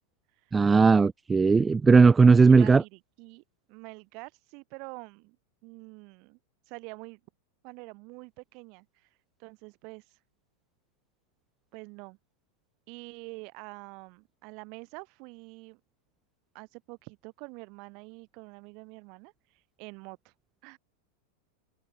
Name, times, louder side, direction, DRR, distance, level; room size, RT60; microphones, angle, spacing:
voice 1, 0.5-2.8, right 4 dB, 15° right, 0.9 m, -18 dB
voice 2, 2.5-3.4 3.7-5.4 5.6-6.4 6.7-7.2 7.6-9.1 9.4-10.2 11.7-12.2 12.9-15.8 16.5-19.3 19.8-20.3 20.6-20.8, right 31 dB, 45° right, 7.0 m, -46 dB
figure-of-eight pair, 90°, 0 cm